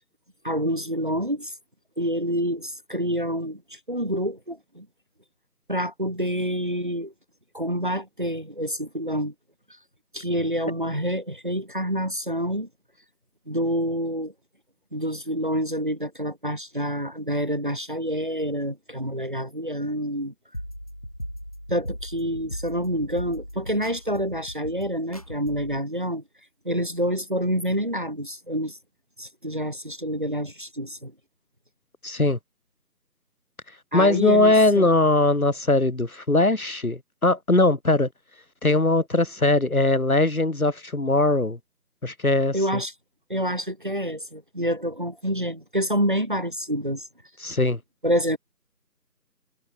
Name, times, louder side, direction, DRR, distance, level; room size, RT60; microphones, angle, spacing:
voice 1, 0.4-1.5 2.0-4.9 5.7-7.1 7.5-9.3 10.1-12.7 13.5-14.3 14.9-20.3 21.7-26.2 26.7-28.8 29.2-31.1 33.9-34.9 42.5-42.9 43.3-47.1 48.0-48.4, equal, 30° right, 1.8 m, -27 dB
sound 1, 20.5-25.8, equal, 20° left, 2.1 m, -38 dB
voice 2, 32.0-32.4 33.9-38.1 38.6-41.6 42.0-42.8 47.4-47.8, left 2 dB, 60° left, 4.5 m, -20 dB
figure-of-eight pair, 175°, 49 cm